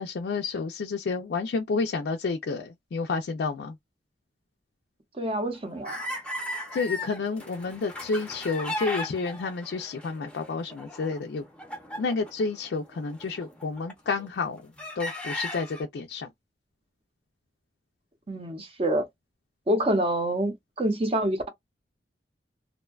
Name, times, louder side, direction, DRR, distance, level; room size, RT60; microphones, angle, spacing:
voice 1, 0.0-3.8 6.7-11.4 12.0-16.3, left 4 dB, 70° left, 0.4 m, -30 dB
voice 2, 5.2-6.0 18.3-19.1 19.7-21.5, right 1 dB, 30° right, 0.6 m, -27 dB
sound 1, 5.5-14.3 14.8-15.8, left 1 dB, 5° left, 0.6 m, -37 dB
2.6 x 2.2 x 2.3 m
head